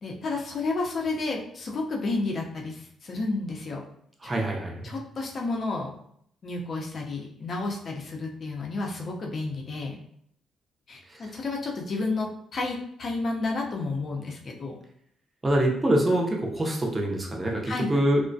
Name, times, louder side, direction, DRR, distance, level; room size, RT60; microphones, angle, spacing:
voice 1, 0.0-3.8 4.8-5.9 6.4-10.0 10.9-14.8 17.7-17.9, left 3 dB, 50° left, 0 dB, 0.5 m, -31 dB
voice 2, 4.2-4.9 11.1-11.3 15.4-18.2, right 1 dB, 20° right, -1 dB, 0.5 m, -25 dB
2.3 x 2.1 x 2.6 m, 0.69 s
cardioid pair, 90°, 0 cm